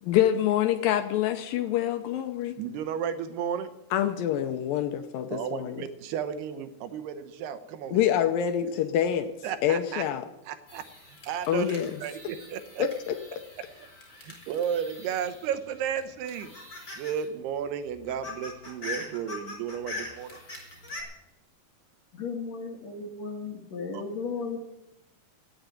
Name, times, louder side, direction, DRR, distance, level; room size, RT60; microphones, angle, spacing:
voice 1, 0.0-2.6 3.9-5.9 7.9-9.3 9.6-10.2 11.5-12.0 12.8-13.4, left 10 dB, 80° left, 8 dB, 2.2 m, -26 dB
voice 2, 2.6-3.7 5.3-8.0 8.6-8.7 9.4-10.0 10.5-10.8 11.3-12.8 14.2-16.5 17.0-20.4 23.9-24.0, right 8 dB, 85° right, 11 dB, 3.0 m, -33 dB
sound 1, 10.7-15.6 15.9-17.3 17.6-17.7 17.9-21.0, left 3 dB, 25° left, 4.6 m, -42 dB
voice 3, 22.1-24.7, left 4 dB, 55° left, 3 dB, 2.3 m, -35 dB
17.0 x 7.2 x 9.2 m, 0.94 s
omnidirectional pair, 4.5 m